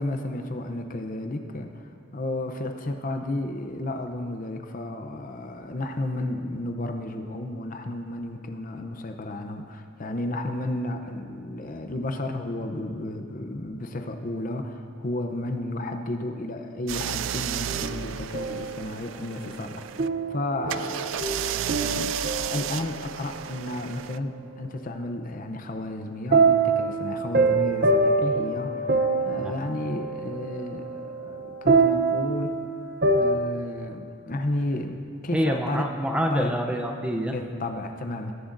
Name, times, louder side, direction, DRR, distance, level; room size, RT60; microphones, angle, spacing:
voice 1, 0.0-28.9 29.3-32.6 33.1-35.8 36.3-36.5 37.3-38.3, left 1 dB, 40° left, 6 dB, 0.7 m, -32 dB
sound 1, 16.9-20.1 20.7-24.2, right 10 dB, 65° right, 0.3 m, -33 dB
sound 2, 17.7-18.9 20.0-23.2 26.3-33.3, right 3 dB, 45° right, 0.7 m, -25 dB
voice 2, 35.3-37.3, equal, 5° right, 3 dB, 0.6 m, -26 dB
21.0 x 11.0 x 2.6 m, 2.5 s
head